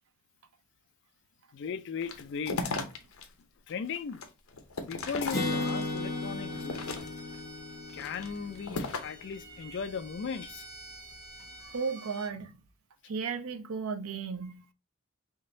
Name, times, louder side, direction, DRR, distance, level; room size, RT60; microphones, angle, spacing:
voice 1, 1.5-2.7 3.7-4.2 4.8-7.0 7.3-7.4 7.9-10.7, left 5 dB, 60° left, 0.4 m, -37 dB
sound 1, 2.0-3.3 3.7-6.0 6.5-7.4 7.9-9.2, left 3 dB, 80° left, 0.8 m, -36 dB
Bowed string instrument, 5.0-12.4, right 1 dB, 20° right, 0.7 m, -50 dB
Acoustic guitar, 5.3-9.0, left 2 dB, 15° left, 1.5 m, -35 dB
voice 2, 11.6-12.5 13.1-14.6, right 5 dB, 80° right, 0.5 m, -34 dB
3.7 x 2.5 x 3.8 m
head